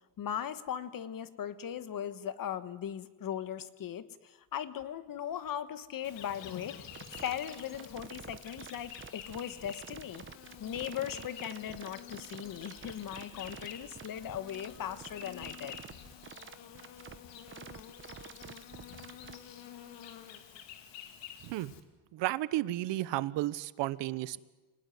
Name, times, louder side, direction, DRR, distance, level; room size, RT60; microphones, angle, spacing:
voice 1, 0.2-10.2 10.6-15.8, left 9 dB, 50° left, 13 dB, 1.4 m, -39 dB
Insect, 6.0-21.8, left 9 dB, 70° left, 2.7 m, -49 dB
sound 1, 6.9-19.3, right 7 dB, 25° right, 1.0 m, -49 dB
voice 2, 21.4-21.7 22.1-24.4, right 16 dB, 70° right, 17 dB, 1.1 m, -33 dB
25.0 x 19.5 x 9.5 m, 1.2 s
cardioid pair, 110°, 44 cm